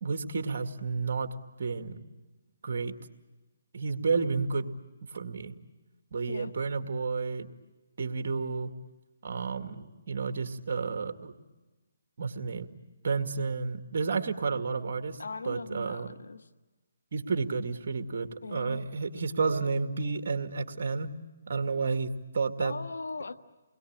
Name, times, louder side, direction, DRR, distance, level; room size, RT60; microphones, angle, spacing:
voice 1, 0.0-1.3 1.6-2.0 2.6-3.0 3.7-4.7 5.1-5.5 6.1-7.5 8.0-8.7 9.2-11.3 12.2-12.7 13.0-15.2 15.4-16.1 17.1-21.1 21.5-22.7, right 4 dB, 55° right, 7 dB, 2.2 m, -31 dB
voice 2, 15.2-16.5 18.4-18.8 22.6-23.3, left 3 dB, 85° left, 10 dB, 1.6 m, -39 dB
29.5 x 22.0 x 8.8 m, 1.2 s
hypercardioid pair, 160°, 0 cm